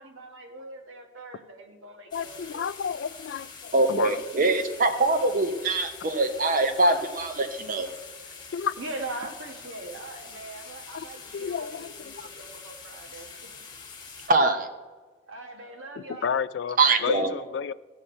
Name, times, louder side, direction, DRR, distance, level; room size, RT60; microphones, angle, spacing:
voice 1, 0.0-2.6 7.9-8.0 8.4-8.5 8.8-13.5 15.3-16.3, right 2 dB, 80° right, 3 dB, 1.4 m, -41 dB
voice 2, 2.1-4.2 8.5-8.8 10.9-11.0 11.3-12.1 16.0-17.7, left 7 dB, 65° left, 16 dB, 0.3 m, -31 dB
sound 1, 2.1-14.3, left 5 dB, 20° left, 1.5 m, -45 dB
voice 3, 3.7-7.9 14.3-14.7 16.8-17.3, right 2 dB, 45° right, 7 dB, 0.7 m, -23 dB
15.0 x 6.3 x 4.3 m, 1.3 s
head